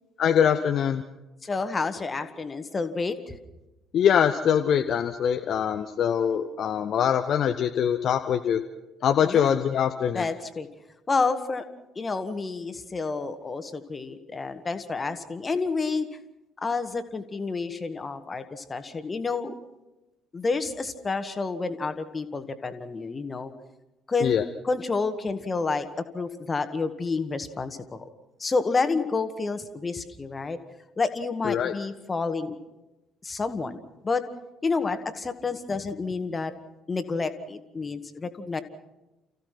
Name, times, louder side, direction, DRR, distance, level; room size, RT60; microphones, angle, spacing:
voice 1, 0.2-1.0 3.9-8.6 9.0-10.3 24.2-24.4 31.4-31.7, left 8 dB, 50° left, 7 dB, 0.8 m, -23 dB
voice 2, 1.4-3.3 9.2-9.5 10.1-10.7 11.1-11.6 12.0-16.1 16.6-19.6 20.3-23.5 24.1-24.4 24.6-25.9 26.1-28.1 28.4-30.6 31.0-32.6 33.2-34.2 34.6-36.5 36.9-38.6, left 4 dB, 30° left, 10 dB, 1.8 m, -29 dB
29.5 x 15.5 x 5.9 m, 1.0 s
figure-of-eight pair, 50°, 0 cm